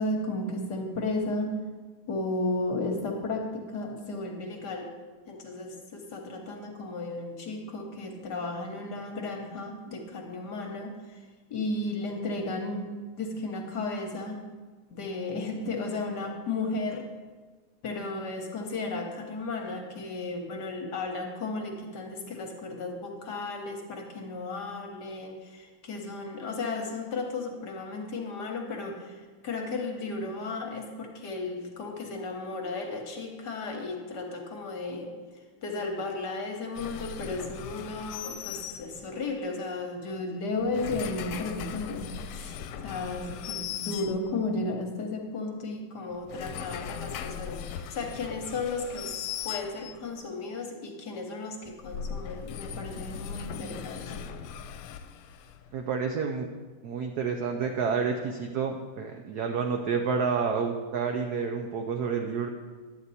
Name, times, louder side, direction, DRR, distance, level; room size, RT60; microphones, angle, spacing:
voice 1, 0.0-1.5 2.1-4.9 5.3-11.2 11.5-12.8 13.2-14.4 14.9-17.0 17.8-35.1 35.6-42.6 42.8-54.2, left 3 dB, 55° left, 2 dB, 1.5 m, -34 dB
sound 1, 36.7-39.3 40.5-44.6 46.1-50.1 51.7-55.8, left 8 dB, 80° left, 1.4 m, -39 dB
voice 2, 55.7-56.5 56.8-62.5, right 5 dB, 75° right, 4 dB, 0.9 m, -29 dB
10.5 x 8.0 x 4.1 m, 1.4 s
omnidirectional pair, 2.4 m